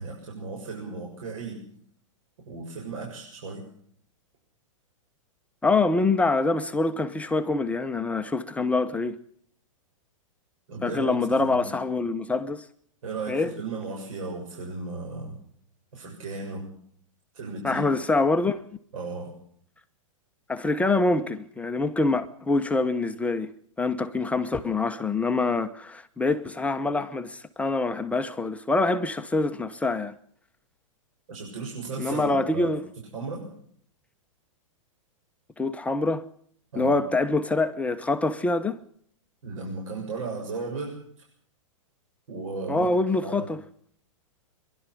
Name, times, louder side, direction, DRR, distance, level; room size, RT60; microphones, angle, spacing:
voice 1, 0.0-1.6 2.5-3.6 10.7-11.7 13.0-15.4 15.9-16.7 17.3-17.8 18.9-19.3 31.3-32.7 33.1-33.5 36.7-37.0 39.4-41.0 42.3-42.9 43.2-43.5, right 3 dB, 75° right, 7.3 m, -35 dB
voice 2, 5.6-9.2 10.8-12.7 13.3-13.5 17.6-18.6 20.5-23.5 23.8-30.1 32.0-32.8 35.6-36.3 36.7-38.8 42.7-43.6, left 3 dB, 10° left, 0.9 m, -25 dB
24.0 x 12.0 x 9.9 m
hypercardioid pair, 130°, 17 cm